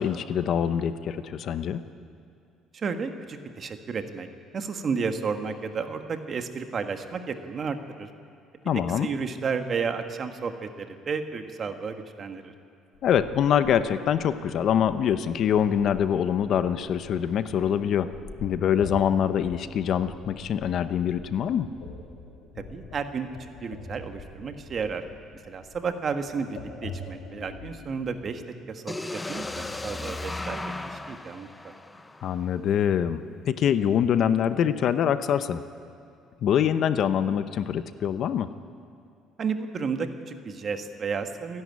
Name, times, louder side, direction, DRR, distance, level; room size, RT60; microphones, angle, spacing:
voice 1, 0.0-1.8 8.6-9.1 13.0-18.1 18.4-21.7 32.2-35.6 36.4-38.5, left 9 dB, 55° left, 11 dB, 0.8 m, -24 dB
voice 2, 2.7-4.3 4.5-8.1 9.0-12.5 22.6-25.0 25.4-28.4 28.7-31.7 39.4-41.6, right 5 dB, 35° right, 7 dB, 1.5 m, -32 dB
sound 1, 12.9-28.3, left 3 dB, 75° left, 6.8 m, -45 dB
sound 2, 28.9-32.8, left 2 dB, 10° left, 0.8 m, -36 dB
28.5 x 11.0 x 9.6 m, 2.5 s
cardioid pair, 125°, 0 cm